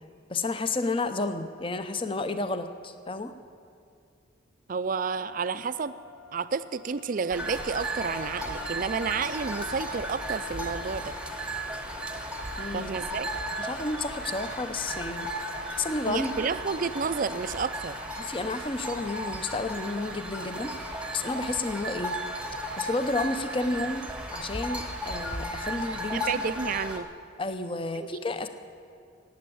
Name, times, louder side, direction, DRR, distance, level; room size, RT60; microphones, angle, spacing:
voice 1, 0.3-3.3 12.6-12.9 13.6-15.3 15.7-16.3 18.2-20.8 21.1-22.2 22.8-26.2 27.4-28.5, left 2 dB, 25° left, 10 dB, 0.6 m, -31 dB
voice 2, 4.7-6.0 6.3-11.2 12.7-13.3 16.1-17.9 26.1-27.1 28.0-28.1, right 5 dB, 40° right, 14 dB, 0.4 m, -31 dB
sound 1, 4.9-17.8, left 5 dB, 85° left, 0.8 m, -48 dB
sound 2, 7.3-27.0, right 1 dB, 5° right, 0.9 m, -35 dB
18.5 x 7.9 x 8.6 m, 2.4 s
head